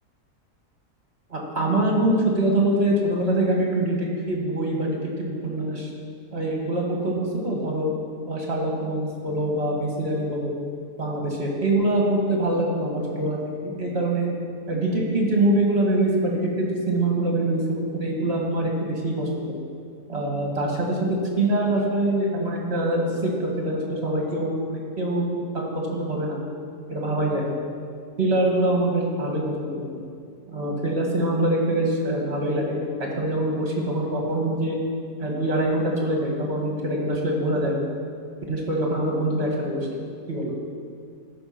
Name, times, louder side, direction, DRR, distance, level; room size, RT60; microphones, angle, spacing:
voice 1, 1.3-5.9 6.3-7.9 8.3-10.5 11.0-14.3 14.7-19.5 20.1-21.0 21.4-26.4 26.9-27.5 28.2-29.9 30.5-34.8 35.2-37.8 38.5-39.9 40.3-40.5, right 1 dB, 40° right, -1 dB, 2.1 m, -24 dB
14.0 x 5.6 x 6.0 m, 2.2 s
omnidirectional pair, 1.7 m